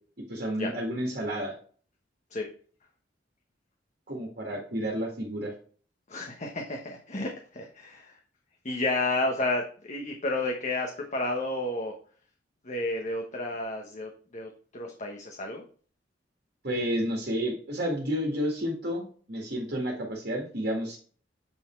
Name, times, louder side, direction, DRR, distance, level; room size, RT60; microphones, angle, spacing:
voice 1, 0.3-1.6 4.1-5.5 16.6-21.0, equal, 55° right, -1 dB, 1.9 m, -31 dB
voice 2, 6.1-8.2 8.6-11.9 12.6-15.6, left 2 dB, 40° left, 2 dB, 1.0 m, -31 dB
8.1 x 4.1 x 4.4 m, 0.43 s
head